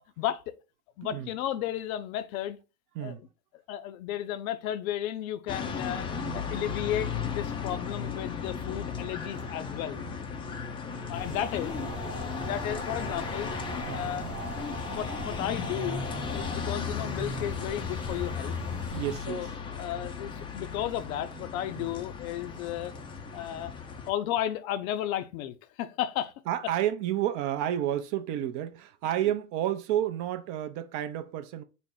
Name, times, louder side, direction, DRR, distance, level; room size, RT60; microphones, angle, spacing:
voice 1, 0.2-0.5 1.0-2.6 3.0-3.2 3.7-6.1 6.3-10.0 11.1-11.8 12.4-13.5 13.9-14.3 14.6-16.0 16.3-18.5 19.3-19.5 19.8-22.9 23.3-23.7 24.1-26.3, left 11 dB, 65° left, 0.6 m, -33 dB
sound 1, 5.5-24.1, left 5 dB, 10° left, 0.4 m, -36 dB
sound 2, 11.1-19.2, left 3 dB, 5° right, 0.7 m, -39 dB
sound 3, 11.6-16.6, right 3 dB, 90° right, 0.8 m, -44 dB
voice 2, 18.9-19.5 19.9-20.1 21.8-21.9 26.5-31.6, right 11 dB, 45° right, 0.5 m, -31 dB
4.1 x 2.0 x 3.6 m
hypercardioid pair, 90°, 45 cm